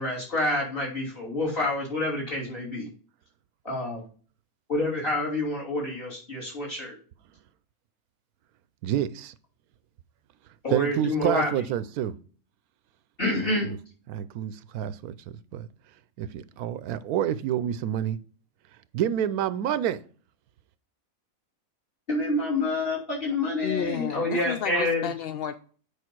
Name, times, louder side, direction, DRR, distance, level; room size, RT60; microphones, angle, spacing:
voice 1, 0.0-2.9 3.6-4.0 4.7-6.9 10.6-11.6 13.2-13.7 22.1-25.1, left 2 dB, 40° left, 3.3 m, -28 dB
voice 2, 8.8-9.3 10.7-12.1 13.6-13.8 14.1-15.7 16.2-18.2 18.9-20.0, right 10 dB, 85° right, 1.1 m, -28 dB
voice 3, 23.6-25.6, left 8 dB, 75° left, 0.5 m, -31 dB
8.3 x 5.2 x 4.5 m
omnidirectional pair, 1.5 m